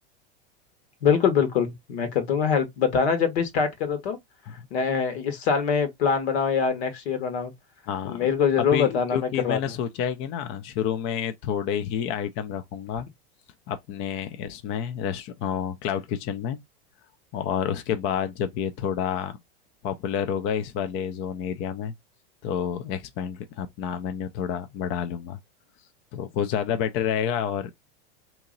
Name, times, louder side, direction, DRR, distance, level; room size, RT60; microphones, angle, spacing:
voice 1, 1.0-4.2 4.7-7.5 8.0-9.6, left 6 dB, 75° left, 1.4 m, -24 dB
voice 2, 7.9-8.3 8.6-13.1 13.7-16.6 17.3-19.4 19.8-21.9 22.4-25.4 26.1-27.7, left 8 dB, 40° left, 0.5 m, -29 dB
2.9 x 2.7 x 3.8 m
supercardioid pair, 120°, 32 cm